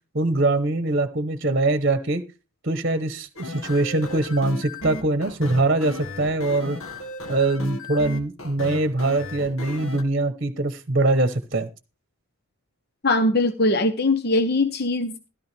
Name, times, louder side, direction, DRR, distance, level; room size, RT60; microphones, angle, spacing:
voice 1, 0.1-2.2 2.6-6.8 7.3-11.7, right 2 dB, 45° right, 11 dB, 1.0 m, -23 dB
sound 1, 3.4-10.0, left 1 dB, 75° left, 1.8 m, -35 dB
voice 2, 13.0-15.3, left 2 dB, 45° left, 9 dB, 0.9 m, -21 dB
14.0 x 12.5 x 3.4 m, 0.30 s
head